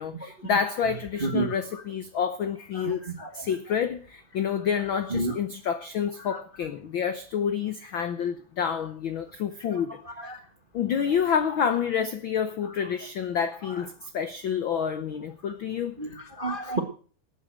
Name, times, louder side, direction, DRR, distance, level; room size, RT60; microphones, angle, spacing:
voice 1, 0.0-3.1 3.3-10.0 10.7-16.0, left 7 dB, 75° left, 1.1 m, -28 dB
voice 2, 2.7-3.3 5.1-5.3 6.3-6.4 9.7-9.8 10.1-10.4 13.8-13.9 16.0-16.8, right 3 dB, 35° right, 0.8 m, -31 dB
13.5 x 9.2 x 7.5 m
omnidirectional pair, 3.4 m